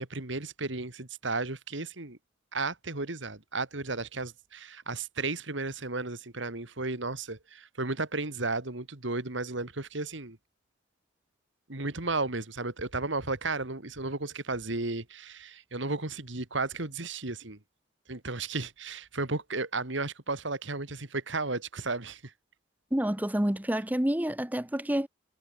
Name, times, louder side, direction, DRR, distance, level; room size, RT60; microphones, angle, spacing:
voice 1, 0.0-2.2 2.5-10.4 11.7-17.6 18.1-22.3, right 3 dB, 65° right, 2.3 m, -34 dB
voice 2, 22.9-25.1, equal, 10° right, 0.8 m, -28 dB
head